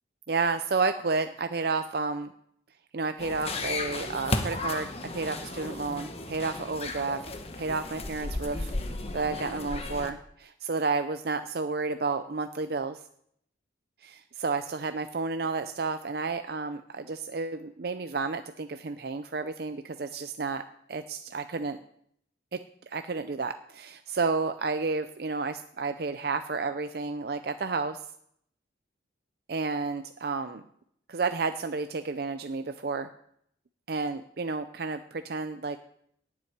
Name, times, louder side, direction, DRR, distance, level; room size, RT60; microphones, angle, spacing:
voice 1, 0.3-2.3 2.9-4.9 5.1-7.2 7.6-8.7 9.1-13.0 14.0-20.6 20.9-21.8 22.5-22.6 22.9-28.0 29.5-30.6 31.1-33.1 33.9-35.8, right 4 dB, 55° right, 9 dB, 0.5 m, -31 dB
sound 1, 3.2-10.1, left 2 dB, 35° left, 1.1 m, -34 dB
9.5 x 7.5 x 9.4 m, 0.70 s
head